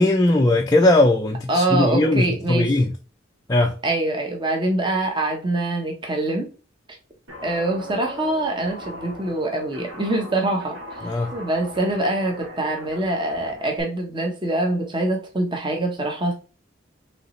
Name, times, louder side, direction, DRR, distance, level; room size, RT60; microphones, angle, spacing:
voice 1, 0.0-2.9 3.5-3.7 11.0-11.3, left 2 dB, 20° left, 0.4 m, -19 dB
voice 2, 1.5-2.7 3.8-6.5 7.4-10.8 11.3-16.3, right 2 dB, 25° right, 0.9 m, -24 dB
Guitar, 7.3-13.8, left 1 dB, 75° right, 1.5 m, -39 dB
5.4 x 3.2 x 3.1 m
head